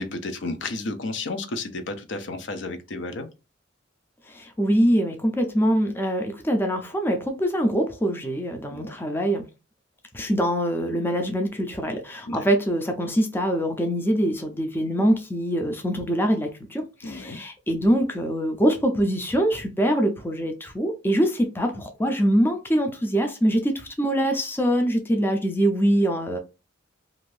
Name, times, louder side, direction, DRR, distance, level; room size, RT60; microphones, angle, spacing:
voice 1, 0.0-3.3 8.7-9.0 12.3-12.4 17.0-17.4, left 2 dB, 65° left, 0.5 m, -32 dB
voice 2, 4.3-9.4 10.1-26.4, equal, 10° left, 0.4 m, -24 dB
2.6 x 2.5 x 3.2 m
head